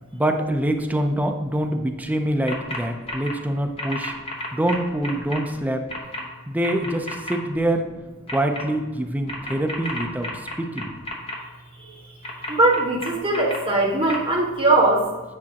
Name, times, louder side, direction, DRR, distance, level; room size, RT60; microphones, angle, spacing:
voice 1, 0.1-4.1 4.5-5.8 6.5-7.9 8.3-10.9, right 1 dB, 10° right, 4 dB, 0.5 m, -25 dB
sound 1, 2.5-2.8 3.1-3.3 3.8-5.4 5.9-6.2 6.6-7.3 8.3-8.6 9.3-11.4 12.2-13.6 14.1-14.2, left 1 dB, 30° left, 1.0 m, -31 dB
voice 2, 12.5-15.0, right 2 dB, 30° right, -4 dB, 1.5 m, -20 dB
8.5 x 5.0 x 2.8 m, 1.2 s
head